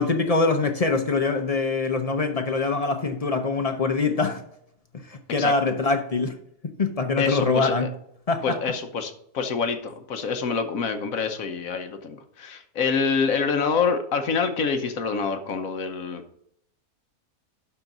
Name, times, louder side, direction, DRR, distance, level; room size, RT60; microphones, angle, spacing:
voice 1, 0.0-4.4 5.1-6.3 6.8-7.9 8.3-8.6, left 3 dB, 40° left, 0.5 m, -24 dB
voice 2, 7.2-7.9 8.4-16.2, left 5 dB, 65° left, 1.3 m, -26 dB
11.5 x 4.0 x 5.9 m
omnidirectional pair, 1.6 m